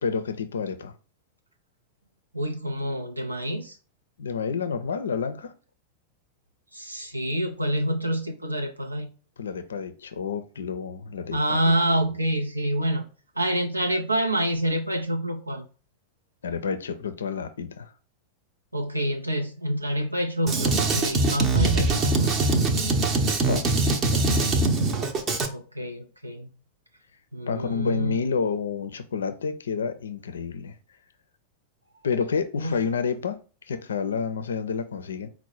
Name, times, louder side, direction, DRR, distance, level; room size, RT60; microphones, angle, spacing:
voice 1, 0.0-0.9 4.2-5.5 9.4-12.0 16.4-17.9 23.1-23.2 23.5-23.7 24.1-24.5 27.5-30.8 32.0-33.4 33.7-35.3, left 6 dB, 70° left, 0.4 m, -29 dB
voice 2, 2.3-3.8 6.7-9.1 11.3-13.1 13.4-15.7 18.7-22.3 25.5-26.5 27.3-28.2 32.6-32.8, right 1 dB, 85° right, 0.4 m, -27 dB
Drum kit, 20.5-25.5, right 3 dB, 30° right, 0.6 m, -22 dB
4.5 x 2.1 x 4.3 m
figure-of-eight pair, 90°, 0 cm